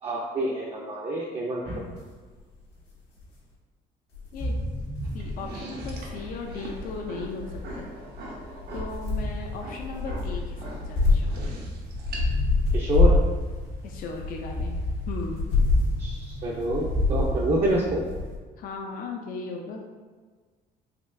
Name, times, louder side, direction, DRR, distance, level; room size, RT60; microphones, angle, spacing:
voice 1, 0.0-1.6 12.7-13.2 16.0-18.0, right 1 dB, 35° right, -3 dB, 0.6 m, -27 dB
sound 1, 1.6-2.0 3.2-3.3 4.1-18.4, left 2 dB, 85° left, 1.3 m, -27 dB
sound 2, 5.0-17.9, right 2 dB, 65° right, 0.8 m, -44 dB
voice 2, 5.1-7.9 8.7-11.6 13.8-14.8 15.1-15.5 18.6-19.8, left 4 dB, 55° left, 1 dB, 0.5 m, -37 dB
4.2 x 2.9 x 2.6 m, 1.4 s
cardioid pair, 110°, 17 cm